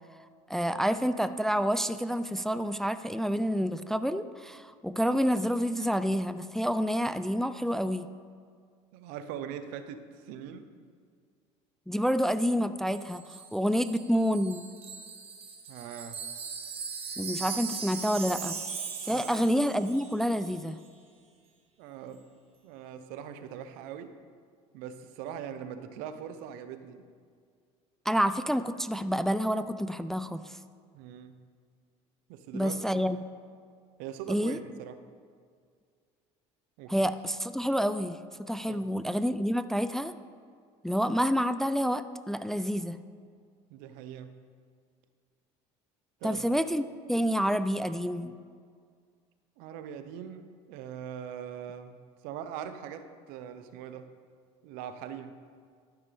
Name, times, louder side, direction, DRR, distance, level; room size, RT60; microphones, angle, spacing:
voice 1, 0.5-8.1 11.9-13.2 13.5-14.7 17.2-18.6 19.0-20.8 28.1-30.6 32.5-33.2 34.3-34.6 36.9-38.2 38.5-40.1 40.8-43.0 46.2-48.4, equal, 5° left, 12 dB, 0.3 m, -28 dB
voice 2, 8.9-10.7 15.7-16.2 19.1-19.4 21.8-22.2 22.6-24.2 24.7-27.0 30.9-31.4 32.3-33.1 34.0-35.0 36.8-36.9 38.7-38.8 43.7-44.4 46.2-46.5 49.6-54.1 54.6-55.4, right 8 dB, 75° right, 10 dB, 0.8 m, -41 dB
Wind chime, 12.9-20.2 20.4-20.6, right 6 dB, 40° right, 1.5 m, -39 dB
12.0 x 10.5 x 3.5 m, 2.1 s
supercardioid pair, 100°, 15 cm